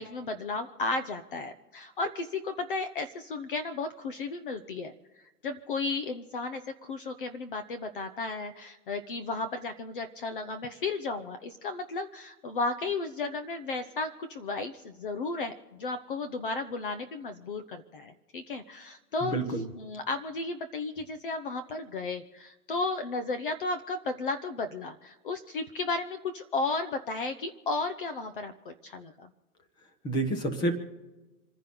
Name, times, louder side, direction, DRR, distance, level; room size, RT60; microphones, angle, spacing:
voice 1, 0.0-4.9 5.4-19.4 19.8-29.3, left 3 dB, 35° left, 9 dB, 1.0 m, -34 dB
voice 2, 19.2-19.6 30.0-30.7, right 2 dB, 10° left, 6 dB, 1.3 m, -28 dB
28.5 x 10.5 x 3.9 m, 1.2 s
hypercardioid pair, 165°, 46 cm